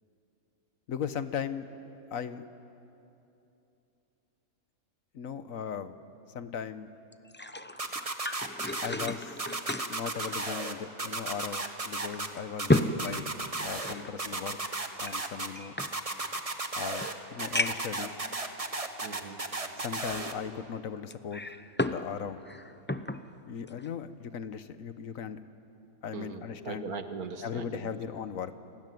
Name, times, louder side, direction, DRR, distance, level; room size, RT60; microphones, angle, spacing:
voice 1, 0.9-1.7 2.1-2.4 5.1-6.0 6.3-6.9 8.8-9.4 9.9-13.3 13.6-14.6 15.0-15.7 16.7-18.2 19.8-21.4 21.8-22.4 23.5-25.4 26.0-26.9 27.4-28.6, left 7 dB, 70° left, 11 dB, 1.4 m, -37 dB
sound 1, 7.1-11.1 11.5-11.6 12.1-14.1 15.0-16.4 17.0-17.1 17.5-18.0 18.7-18.8 21.1-22.1 22.4-23.2 23.7-23.9, left 1 dB, 15° left, 0.4 m, -33 dB
sound 2, 7.8-9.1 9.4-10.7 11.0-12.3 12.6-13.9 14.2-15.5 15.8-17.1 17.4-20.3, right 2 dB, 25° right, 1.5 m, -34 dB
voice 2, 19.0-19.4 26.1-28.1, right 4 dB, 90° right, 7 dB, 2.0 m, -40 dB
29.5 x 20.0 x 9.4 m, 2.9 s
omnidirectional pair, 1.5 m